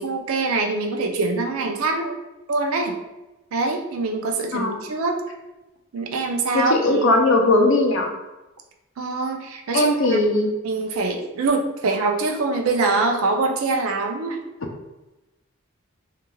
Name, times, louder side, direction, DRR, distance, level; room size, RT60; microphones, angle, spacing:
voice 1, 0.0-2.1 2.5-2.9 3.5-5.2 5.9-7.1 9.0-10.2 10.6-14.4, right 3 dB, 80° right, 3 dB, 0.4 m, -24 dB
voice 2, 4.5-4.8 6.5-8.1 9.7-10.5, left 2 dB, 60° left, 2 dB, 0.4 m, -19 dB
3.0 x 2.3 x 2.2 m, 1.0 s
head